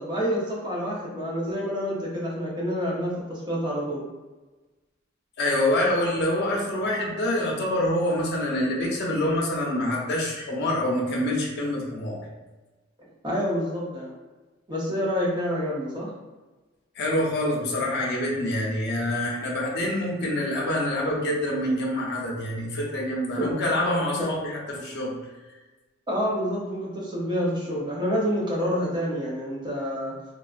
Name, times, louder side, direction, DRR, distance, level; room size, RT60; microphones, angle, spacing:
voice 1, 0.0-4.0 13.2-14.1 14.7-16.1 24.2-24.3 26.1-30.1, equal, 25° right, -5 dB, 0.8 m, -28 dB
voice 2, 5.4-12.2 17.0-25.2, left 1 dB, 55° left, -2 dB, 0.6 m, -26 dB
3.1 x 2.3 x 2.4 m, 1.2 s
head